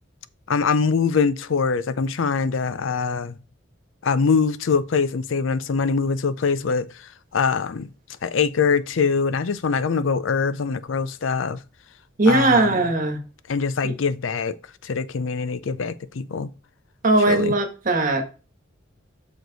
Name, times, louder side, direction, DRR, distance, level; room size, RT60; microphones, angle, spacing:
voice 1, 0.5-3.4 4.0-6.9 7.3-7.9 8.2-11.6 12.3-12.8 13.5-14.6 14.8-16.5 17.3-17.5, left 5 dB, 80° left, 0.5 m, -23 dB
voice 2, 12.2-13.2 17.0-18.2, right 2 dB, 40° right, 1.4 m, -19 dB
6.4 x 4.9 x 3.9 m
head